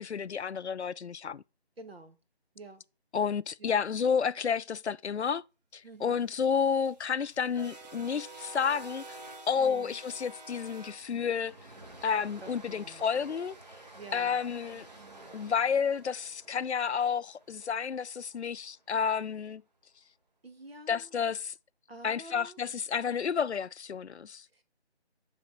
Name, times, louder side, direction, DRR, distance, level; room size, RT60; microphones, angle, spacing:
voice 1, 0.0-1.4 3.1-5.4 5.7-9.2 9.5-11.5 12.0-13.6 14.1-14.9 15.3-19.6 20.9-21.5 22.0-24.4, left 6 dB, 80° left, 0.5 m, -30 dB
voice 2, 1.8-2.2 2.5-2.8 3.6-3.8 5.8-6.2 9.6-10.0 12.4-13.0 13.9-14.4 20.4-21.1 21.9-22.6 24.5-24.6, right 2 dB, 65° right, 1.6 m, -48 dB
sound 1, 6.3-18.5, right 2 dB, 40° right, 1.4 m, -50 dB
9.2 x 3.5 x 5.6 m
figure-of-eight pair, 170°, 33 cm